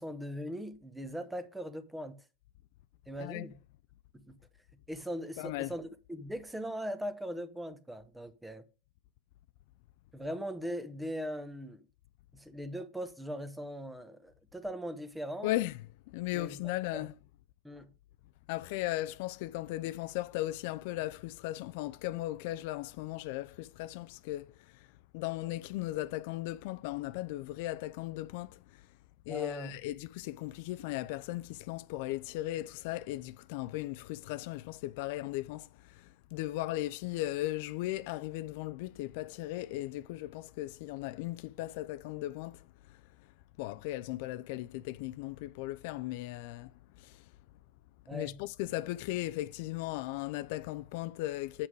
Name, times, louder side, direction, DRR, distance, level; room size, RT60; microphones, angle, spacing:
voice 1, 0.0-2.2 3.1-3.6 4.1-4.4 4.9-8.6 10.1-11.9 12.3-15.5 16.3-16.6 16.9-17.1 17.6-17.9 29.3-29.7 48.1-48.4, equal, 5° right, 1.0 m, -40 dB
voice 2, 5.4-5.7 15.4-15.7 16.1-17.1 18.5-24.9 25.1-28.6 29.3-42.6 42.9-43.0 43.6-46.7 47.0-47.2 48.1-51.7, left 16 dB, 65° left, 0.4 m, -37 dB
8.2 x 5.7 x 4.7 m
supercardioid pair, 125°, 0 cm